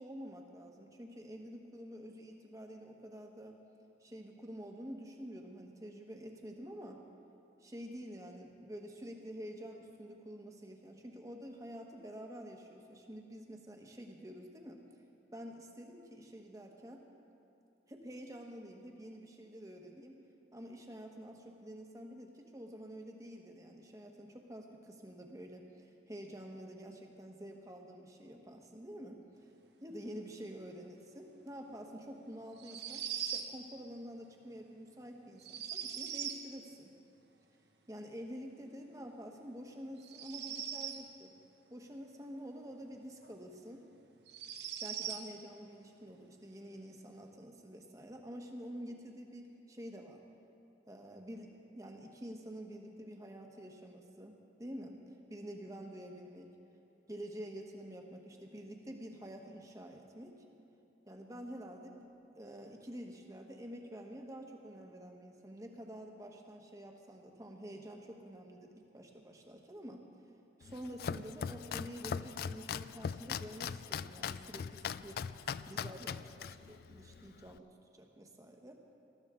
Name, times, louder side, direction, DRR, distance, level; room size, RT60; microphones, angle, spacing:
voice 1, 0.0-3.6 4.0-7.0 7.6-14.8 15.3-17.0 17.9-20.2 20.5-29.2 29.8-36.9 37.9-41.3 41.7-43.8 44.8-50.2 50.9-55.0 55.3-56.5 57.1-60.3 61.0-70.1 70.6-75.2 75.4-78.8, equal, 20° right, 2 dB, 1.2 m, -48 dB
sound 1, 32.6-33.5 35.4-36.4 40.0-41.1 43.2-43.3 44.3-45.3, right 9 dB, 75° right, 1.1 m, -40 dB
Domestic sounds home sounds, 70.6-77.6, left 7 dB, 60° left, 0.3 m, -41 dB
19.5 x 14.0 x 3.7 m, 2.9 s
head